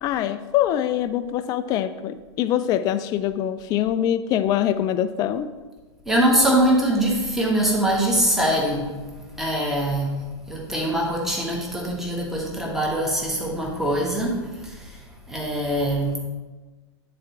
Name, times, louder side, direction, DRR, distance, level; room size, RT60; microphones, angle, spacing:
voice 1, 0.0-5.5, left 11 dB, 25° left, 11 dB, 0.4 m, -24 dB
voice 2, 6.1-8.9 9.4-10.1 10.5-14.8 15.3-16.2, right 1 dB, ahead, -2 dB, 1.4 m, -23 dB
9.6 x 4.2 x 4.6 m, 1.3 s
figure-of-eight pair, 100°, 15 cm